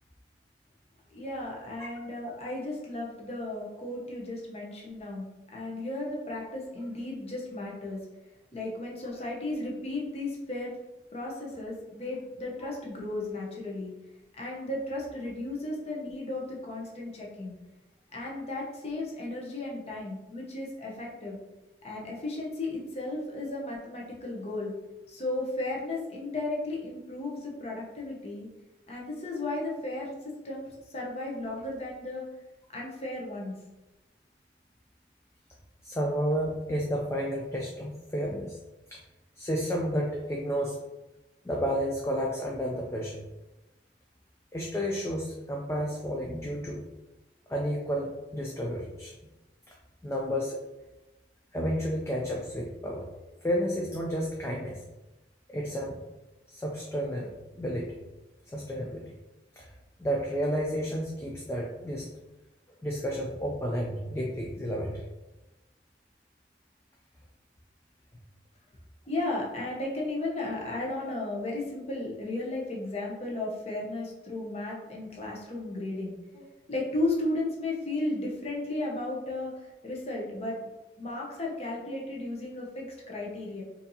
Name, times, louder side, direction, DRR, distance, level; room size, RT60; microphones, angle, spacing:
voice 1, 1.1-5.2 5.5-8.0 8.5-10.8 11.1-13.9 14.4-17.5 18.1-21.4 21.8-24.7 25.1-28.5 28.9-32.3 32.7-33.5 69.1-80.6 81.0-83.6, left 2 dB, 35° left, -2 dB, 0.8 m, -34 dB
voice 2, 35.8-38.6 38.9-39.0 39.4-40.8 41.4-43.2 44.5-46.8 47.5-49.1 49.7-49.8 50.0-50.6 51.5-53.1 53.4-54.8 55.5-56.0 56.5-57.3 57.6-58.0 58.5-59.1 59.6-59.7 60.0-62.1 62.8-65.0, equal, 15° left, -1 dB, 0.3 m, -31 dB
4.4 x 2.6 x 2.7 m, 1.0 s
head